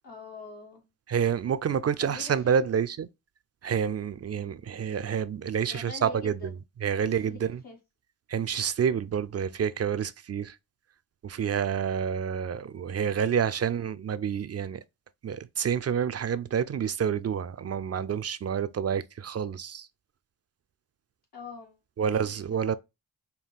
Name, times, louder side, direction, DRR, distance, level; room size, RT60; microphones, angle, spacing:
voice 1, 0.0-0.8 2.0-2.6 5.7-6.6 7.0-7.8 21.3-22.6, left 4 dB, 85° left, 2.0 m, -45 dB
voice 2, 1.1-3.1 3.6-6.4 6.8-7.6 8.3-10.6 11.2-14.8 15.2-19.9 22.0-22.7, right 7 dB, 45° right, 0.4 m, -28 dB
5.5 x 2.3 x 3.5 m
cardioid pair, 50°, 36 cm